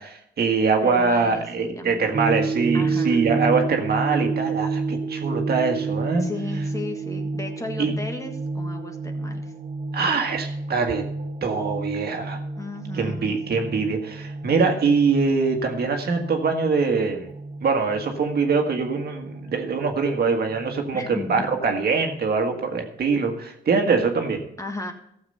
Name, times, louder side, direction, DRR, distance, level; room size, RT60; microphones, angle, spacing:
voice 1, 0.0-6.3 7.8-7.9 9.9-11.0 11.4-12.4 12.9-17.3 17.6-24.4, right 4 dB, 50° right, 4 dB, 1.7 m, -23 dB
voice 2, 0.8-2.1 2.7-3.3 6.1-9.5 12.6-13.4 20.9-21.4 24.6-24.9, left 2 dB, 15° left, 4 dB, 1.6 m, -35 dB
sound 1, 2.1-21.6, right 4 dB, 30° right, 1.5 m, -30 dB
13.5 x 7.2 x 5.5 m, 0.74 s
cardioid pair, 90°, 20 cm